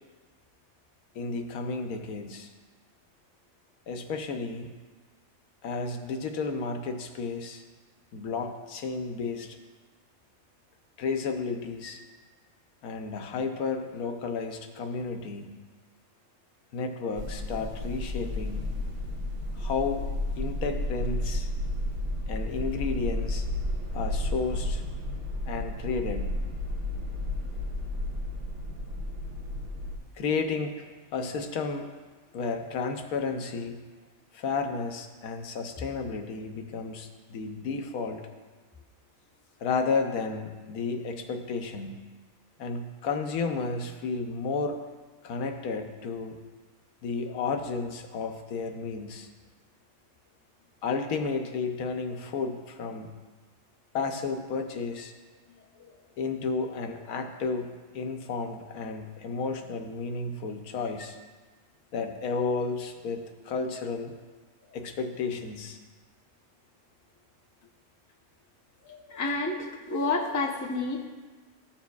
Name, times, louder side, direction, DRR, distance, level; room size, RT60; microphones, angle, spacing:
voice 1, 1.1-2.5 3.9-4.7 5.6-7.6 8.1-9.6 11.0-12.0 12.8-15.5 16.7-18.7 19.5-20.1 20.3-21.5 22.3-23.5 23.9-24.8 25.5-26.2 30.2-30.9 31.1-31.9 32.3-33.8 34.3-38.2 39.6-41.9 42.6-44.8 45.2-46.4 47.0-49.3 50.8-53.1 53.9-55.1 56.2-61.2 61.9-64.1 64.7-65.8, left 4 dB, 85° left, 5 dB, 1.2 m, -32 dB
sound 1, 17.2-30.0, left 1 dB, 85° right, 1.5 m, -32 dB
voice 2, 68.8-71.1, left 3 dB, 20° left, 0 dB, 0.6 m, -30 dB
13.5 x 7.2 x 2.3 m, 1.3 s
omnidirectional pair, 1.5 m